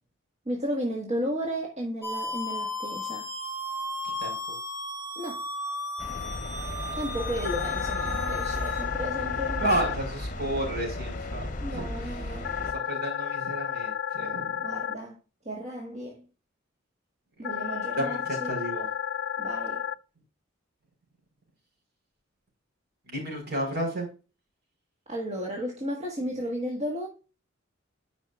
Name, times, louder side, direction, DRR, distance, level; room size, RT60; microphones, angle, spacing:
voice 1, 0.4-3.3 5.1-5.4 6.9-10.0 11.6-12.5 14.6-15.2 15.4-16.2 17.4-18.5 19.4-19.9 25.1-27.1, equal, 35° right, 1.5 m, -34 dB
sound 1, 2.0-8.8, left 1 dB, 15° right, 1.6 m, -35 dB
sound 2, 6.0-12.7, left 2 dB, 40° left, 0.8 m, -35 dB
sound 3, 7.4-9.9 12.4-14.9 17.4-19.9, left 9 dB, 65° left, 0.4 m, -32 dB
voice 2, 9.6-14.7 17.4-18.9 23.1-24.1, right 1 dB, 55° right, 4.2 m, -32 dB
10.5 x 5.4 x 2.4 m
head